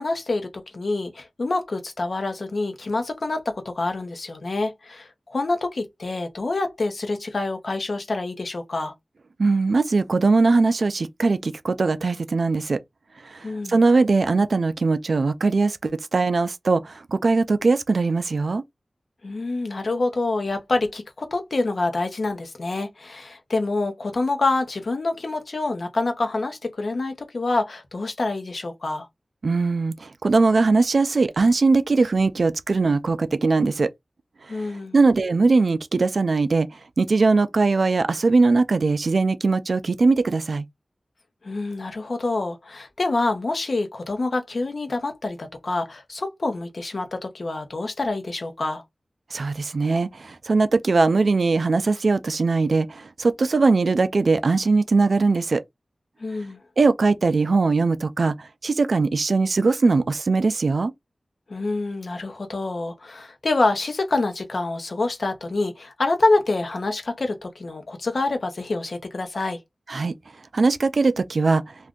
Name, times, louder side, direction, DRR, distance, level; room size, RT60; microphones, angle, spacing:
voice 1, 0.0-8.9 13.4-13.8 19.2-29.1 34.5-34.9 41.4-48.8 56.2-56.6 61.5-69.6, left 2 dB, 65° left, 0.8 m, -26 dB
voice 2, 9.4-12.8 13.3-13.4 13.7-18.6 29.4-33.9 34.9-36.7 37.0-40.7 49.3-55.6 56.8-58.4 58.6-60.9 69.9-70.1 70.5-71.6, right 3 dB, 70° right, 0.4 m, -20 dB
2.6 x 2.4 x 3.6 m
wide cardioid pair, 80°, 0 cm